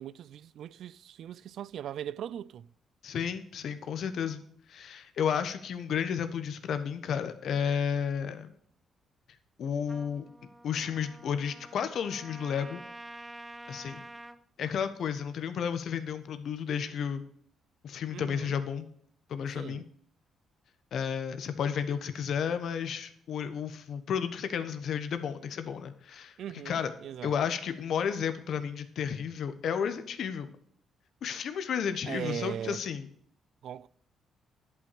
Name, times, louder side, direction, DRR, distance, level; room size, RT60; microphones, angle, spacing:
voice 1, 0.0-2.7 18.1-18.6 19.5-19.8 26.4-27.3 32.1-32.8 33.6-33.9, right 10 dB, 70° right, 0.3 m, -39 dB
voice 2, 3.0-4.4 4.7-8.5 9.6-10.3 10.6-12.8 13.7-14.0 14.6-17.2 17.8-18.9 19.3-19.9 20.9-26.4 26.6-26.9 27.2-30.5 31.2-33.1, left 7 dB, 65° left, 1.1 m, -32 dB
Trumpet, 9.9-14.4, right 1 dB, 15° right, 0.7 m, -48 dB
11.0 x 5.8 x 6.8 m
cardioid pair, 90°, 0 cm